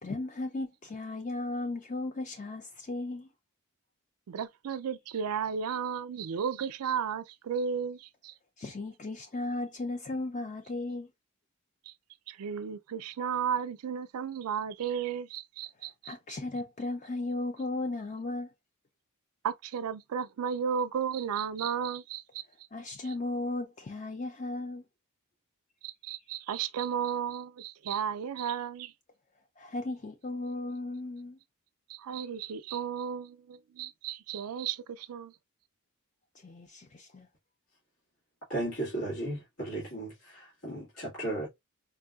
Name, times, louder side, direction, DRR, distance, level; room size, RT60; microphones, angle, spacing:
voice 1, 0.0-3.3 8.6-11.1 16.1-18.5 22.7-24.8 29.6-31.4 36.4-37.3, left 2 dB, 35° left, 0.5 m, -36 dB
voice 2, 4.3-8.3 11.9-12.0 12.3-16.2 19.4-22.4 23.0-23.1 25.8-28.9 31.9-35.3, right 7 dB, 85° right, 0.4 m, -34 dB
voice 3, 38.5-41.5, right 1 dB, 80° left, 1.9 m, -35 dB
4.3 x 2.7 x 2.3 m
head